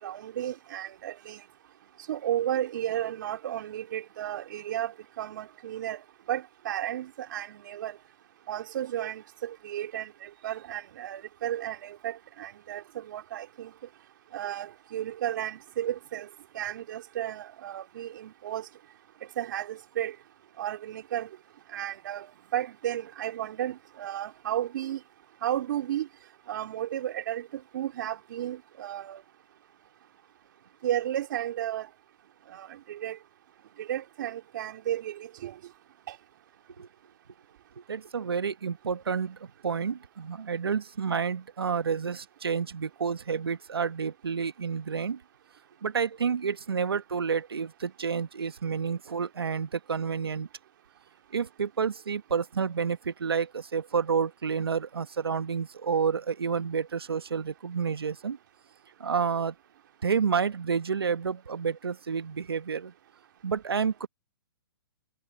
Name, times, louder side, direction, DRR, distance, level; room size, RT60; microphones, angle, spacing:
voice 1, 0.0-1.4 2.1-6.0 6.3-8.0 8.5-13.7 14.3-16.3 16.5-18.7 19.4-20.1 20.6-21.3 21.7-25.0 25.4-26.1 26.5-29.2 30.8-31.9 32.5-33.2 33.8-35.6 36.1-36.2, right 12 dB, 55° right, 3.1 m, -33 dB
voice 2, 37.9-45.2 45.8-50.5 51.3-58.4 59.0-59.5 60.0-62.9 63.4-64.1, right 6 dB, 85° right, 1.3 m, -29 dB
hypercardioid pair, 135°, 12 cm